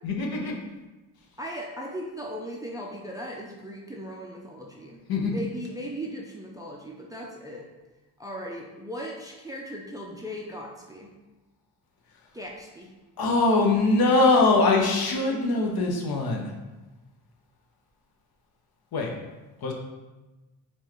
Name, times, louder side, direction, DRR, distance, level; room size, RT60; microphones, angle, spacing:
voice 1, 0.0-0.5 5.1-5.4 13.2-16.5 18.9-19.1 19.6-19.7, left 3 dB, 50° left, 1 dB, 0.8 m, -22 dB
voice 2, 1.4-5.0 5.3-7.7 8.2-11.1 12.3-12.9, equal, 10° right, -2 dB, 0.4 m, -38 dB
4.3 x 2.4 x 3.0 m, 1.1 s
supercardioid pair, 65°, 46 cm